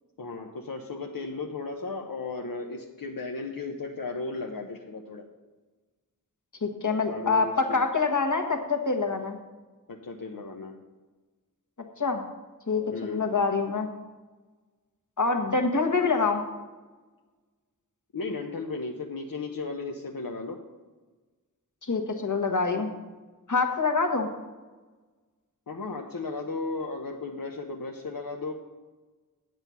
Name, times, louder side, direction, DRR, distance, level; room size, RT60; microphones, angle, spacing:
voice 1, 0.2-5.2 7.1-7.8 9.9-10.8 12.9-13.3 18.1-20.6 25.7-28.5, left 3 dB, 80° left, 1 dB, 0.9 m, -35 dB
voice 2, 6.6-9.4 12.0-12.2 12.7-13.9 15.2-16.4 21.8-22.9 23.5-24.3, left 4 dB, 60° left, 4 dB, 1.4 m, -25 dB
9.3 x 8.0 x 5.7 m, 1.3 s
wide cardioid pair, 60°, 34 cm